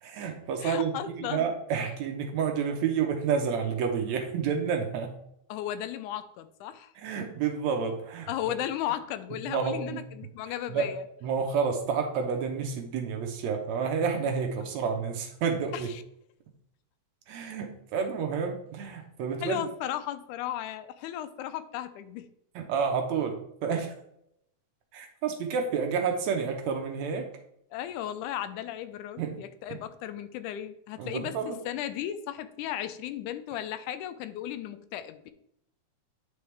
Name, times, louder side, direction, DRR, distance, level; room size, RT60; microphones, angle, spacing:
voice 1, 0.0-5.1 7.0-8.3 9.5-10.0 10.7-10.9 11.2-15.9 17.3-19.7 22.6-23.9 24.9-27.3 29.2-29.4 29.7-29.8 31.0-31.6, right 6 dB, 70° right, 4 dB, 2.0 m, -30 dB
voice 2, 0.6-1.5 5.5-6.9 8.3-11.0 15.7-15.9 19.4-22.3 27.7-31.4 31.7-35.3, left 11 dB, 85° left, 11 dB, 2.0 m, -35 dB
9.2 x 4.7 x 3.3 m, 0.74 s
omnidirectional pair, 3.5 m